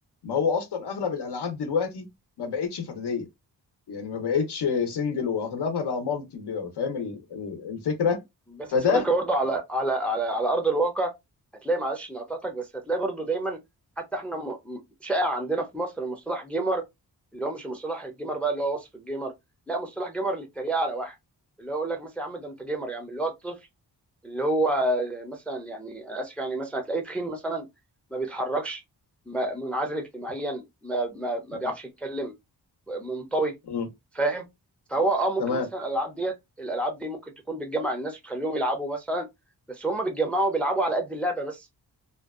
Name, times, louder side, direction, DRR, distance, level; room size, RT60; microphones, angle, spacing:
voice 1, 0.2-2.0 2.4-3.3 3.9-8.2 8.7-9.0 31.5-31.7 33.7-33.9 35.4-35.7, left 5 dB, 85° left, 0.7 m, -28 dB
voice 2, 8.6-11.1 11.6-13.6 14.0-16.8 17.3-19.3 19.7-21.1 21.6-23.6 24.2-27.7 28.1-28.8 29.3-32.3 32.9-33.5 34.2-34.4 34.9-37.2 37.5-39.3 39.7-41.7, right 2 dB, 5° left, 0.3 m, -28 dB
2.6 x 2.2 x 2.3 m
wide cardioid pair, 165°, 39 cm